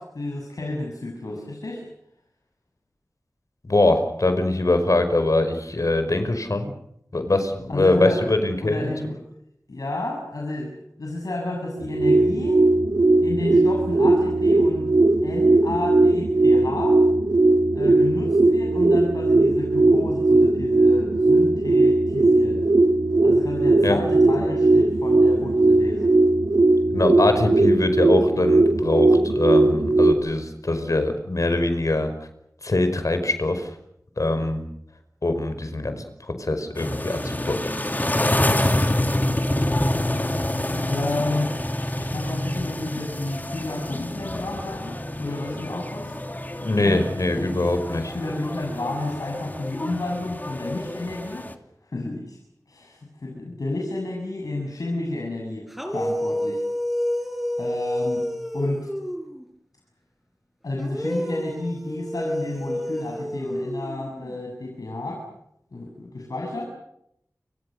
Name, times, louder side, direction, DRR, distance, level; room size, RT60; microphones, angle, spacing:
voice 1, 0.0-1.9 7.7-8.4 8.6-9.2 9.7-10.7 11.0-12.6 13.2-14.9 15.2-17.0 17.7-22.6 23.2-26.1 40.9-41.6 42.0-46.2 46.8-47.1 47.4-47.7 48.1-51.5 51.8-52.4 52.7-56.6 57.6-58.3 58.5-58.9 60.6-65.3 65.7-66.6, left 2 dB, 85° left, -1 dB, 7.7 m, -31 dB
voice 2, 3.6-6.7 7.1-8.9 23.8-24.0 26.9-32.1 32.6-33.7 34.2-34.6 35.2-37.6 46.6-48.1, left 2 dB, 65° left, 8 dB, 5.3 m, -23 dB
sound 1, 11.7-30.1, right 2 dB, 85° right, 2.4 m, -18 dB
sound 2, 36.8-51.5, left 1 dB, 30° left, 3.0 m, -27 dB
sound 3, 55.7-59.4 60.8-64.4, equal, ahead, 5.7 m, -29 dB
30.0 x 26.0 x 6.7 m, 0.77 s
wide cardioid pair, 50°, 6 cm